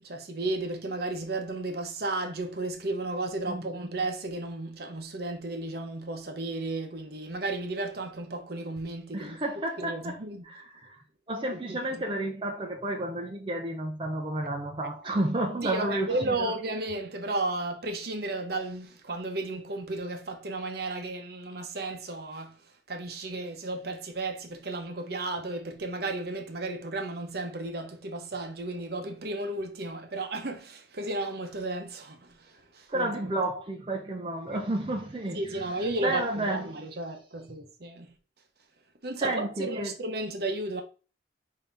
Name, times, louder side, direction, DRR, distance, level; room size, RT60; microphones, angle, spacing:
voice 1, 0.0-9.4 9.8-10.5 11.5-12.0 15.6-22.6 22.9-33.4 35.3-38.1 39.0-40.8, right 2 dB, 55° right, 0.8 m, -34 dB
voice 2, 3.5-3.8 9.1-10.2 10.4-11.0 11.3-16.5 32.9-35.7 36.0-36.8 39.2-39.9, right 1 dB, 30° right, 0.5 m, -31 dB
5.2 x 2.8 x 3.3 m
head